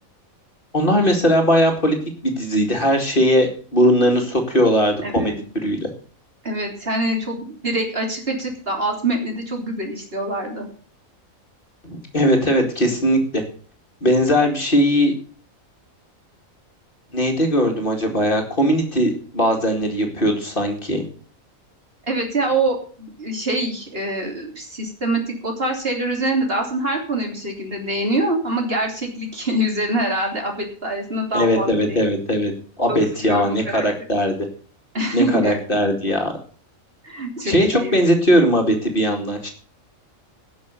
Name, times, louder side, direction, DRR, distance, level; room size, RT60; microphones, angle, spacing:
voice 1, 0.7-2.0 2.2-5.3 5.6-5.9 11.8-13.4 14.0-15.1 17.1-21.0 31.3-32.5 32.8-34.4 35.1-36.3 37.4-39.5, equal, 40° left, 2 dB, 2.5 m, -19 dB
voice 2, 5.0-5.4 6.4-10.7 14.4-14.5 22.1-32.0 32.9-33.8 34.9-35.6 37.0-37.9, right 1 dB, 45° right, 1 dB, 3.5 m, -25 dB
17.5 x 6.4 x 6.9 m, 0.43 s
omnidirectional pair, 1.4 m